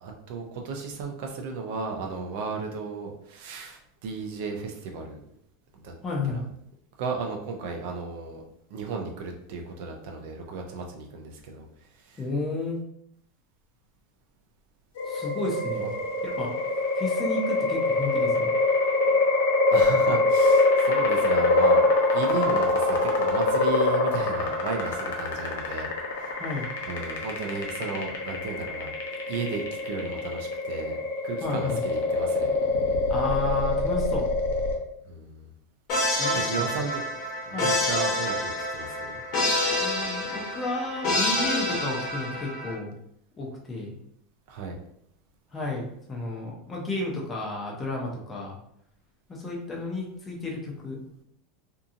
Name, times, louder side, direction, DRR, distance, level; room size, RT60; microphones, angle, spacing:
voice 1, 0.0-5.2 5.7-5.9 7.0-8.4 8.7-11.7 12.0-12.2 15.8-15.9 19.7-21.9 22.1-26.4 26.9-28.9 29.3-31.0 31.2-32.5 35.1-35.5 36.3-37.1 37.4-39.2 44.5-44.8, right 4 dB, 55° right, 2 dB, 0.5 m, -34 dB
voice 2, 6.0-6.4 12.2-12.8 15.0-15.9 16.2-16.5 17.0-18.5 26.4-26.7 31.4-31.8 33.1-34.2 36.2-36.7 37.5-37.7 39.8-42.9 43.4-44.0 45.5-48.6 49.3-51.0, left 2 dB, 15° left, -2 dB, 0.5 m, -32 dB
sound 1, 15.0-34.8, left 2 dB, 80° left, 0.6 m, -24 dB
sound 2, 35.9-42.8, left 1 dB, 40° left, 0.8 m, -27 dB
2.7 x 2.5 x 2.4 m, 0.71 s
supercardioid pair, 170°, 0 cm